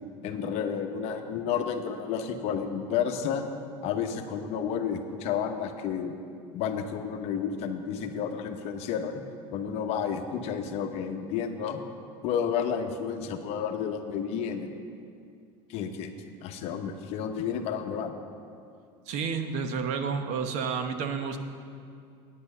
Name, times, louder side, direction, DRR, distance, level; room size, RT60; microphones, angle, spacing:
voice 1, 0.2-3.4 3.8-6.2 6.5-9.2 9.5-11.8 12.2-14.7 15.7-16.1 16.4-18.1, left 7 dB, 55° left, 6 dB, 0.9 m, -31 dB
voice 2, 19.1-21.4, right 5 dB, 60° right, 7 dB, 0.9 m, -30 dB
9.3 x 8.6 x 6.6 m, 2.4 s
supercardioid pair, 135°, 13 cm